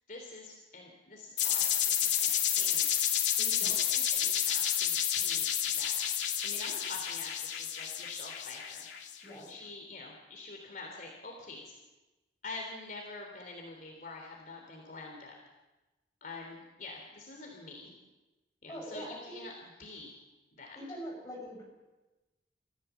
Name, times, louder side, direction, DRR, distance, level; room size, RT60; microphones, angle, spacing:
voice 1, 0.1-8.9 9.5-11.8 12.4-15.4 16.2-17.9 18.6-20.2 20.5-20.8, left 3 dB, 50° left, 0 dB, 3.4 m, -46 dB
sound 1, 1.4-9.2, left 10 dB, 85° left, 2.6 m, -30 dB
voice 2, 3.4-3.7 9.2-9.5 18.7-19.3 20.8-21.6, equal, 20° left, -2 dB, 7.6 m, -43 dB
30.0 x 15.0 x 7.1 m, 1.1 s
head